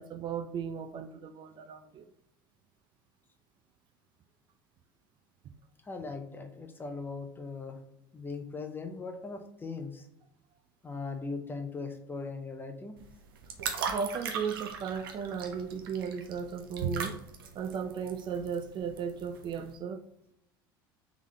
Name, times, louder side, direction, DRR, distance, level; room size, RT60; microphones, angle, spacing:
voice 1, 0.0-2.1 13.9-17.2 17.5-20.0, right 6 dB, 45° right, 0.5 m, -36 dB
voice 2, 5.8-7.8 8.1-10.1 10.8-13.0, left 4 dB, 20° left, 0.8 m, -39 dB
sound 1, 13.0-19.7, right 6 dB, 80° right, 0.7 m, -38 dB
3.6 x 3.6 x 3.2 m
hypercardioid pair, 80°, 12 cm